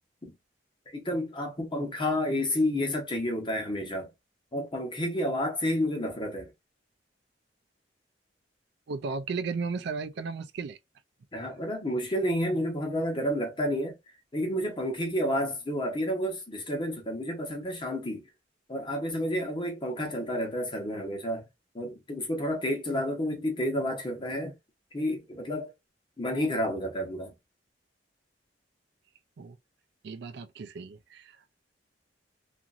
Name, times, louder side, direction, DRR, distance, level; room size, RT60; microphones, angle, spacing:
voice 1, 0.9-4.1 4.5-6.5 11.3-14.0 14.3-18.2 18.7-21.4 21.7-24.6 24.9-25.7 26.2-27.3, equal, 25° left, 1.0 m, -30 dB
voice 2, 8.9-10.8 29.4-29.6 30.0-31.4, right 4 dB, 65° right, 0.4 m, -35 dB
2.9 x 2.5 x 2.5 m
head